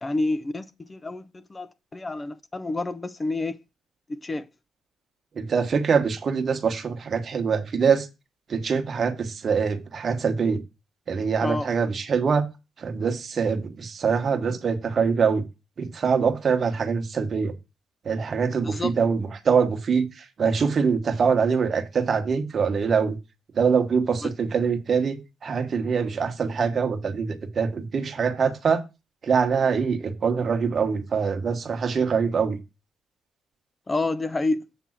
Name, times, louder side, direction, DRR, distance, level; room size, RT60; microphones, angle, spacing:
voice 1, 0.0-3.6 4.1-4.5 11.4-11.7 18.6-18.9 33.9-34.7, left 2 dB, 25° left, 0.4 m, -29 dB
voice 2, 5.3-8.1 8.5-10.6 11.1-12.5 12.8-15.5 15.8-17.5 18.0-23.2 23.5-28.8 29.2-32.6, right 6 dB, 45° right, 1.1 m, -24 dB
7.5 x 3.4 x 5.7 m
cardioid pair, 90°, 0 cm